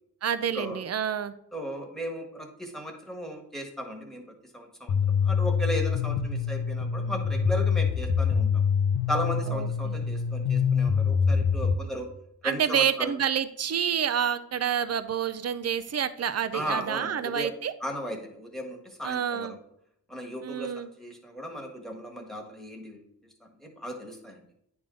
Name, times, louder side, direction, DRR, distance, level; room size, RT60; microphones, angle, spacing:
voice 1, 0.2-1.3 9.5-10.0 12.4-17.7 19.0-19.6 20.4-20.9, right 8 dB, 40° right, 13 dB, 0.5 m, -28 dB
voice 2, 1.5-4.2 4.5-8.6 9.1-12.1 12.4-13.1 16.5-17.5 17.8-19.6 20.1-23.0 23.4-24.4, equal, ahead, 1 dB, 1.5 m, -36 dB
sound 1, 4.9-11.7, left 6 dB, 75° left, 0.9 m, -25 dB
9.4 x 3.6 x 3.7 m, 0.73 s
cardioid pair, 70°, 40 cm